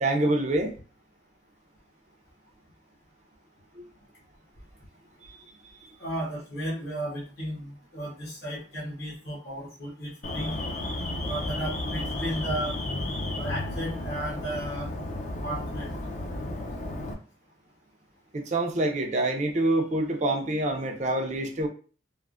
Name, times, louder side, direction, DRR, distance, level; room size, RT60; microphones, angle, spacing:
voice 1, 0.0-0.7 5.2-5.4 18.3-21.7, right 1 dB, 40° right, 3 dB, 0.4 m, -26 dB
voice 2, 6.0-10.6 11.3-12.8 13.4-14.9 15.4-15.9, right 1 dB, 55° left, -4 dB, 0.8 m, -34 dB
Alarm, 10.2-17.1, left 1 dB, 40° left, 0.4 m, -33 dB
3.2 x 2.1 x 2.4 m, 0.38 s
head